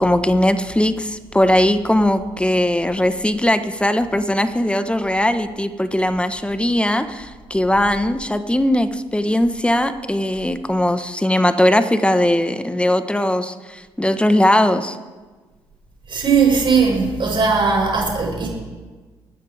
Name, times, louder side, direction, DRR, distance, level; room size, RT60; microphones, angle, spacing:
voice 1, 0.0-15.0, left 1 dB, 10° left, 10 dB, 1.3 m, -19 dB
voice 2, 16.1-18.5, right 5 dB, 45° right, -2 dB, 6.4 m, -18 dB
24.0 x 12.5 x 3.6 m, 1.3 s
hypercardioid pair, 45°, 12 cm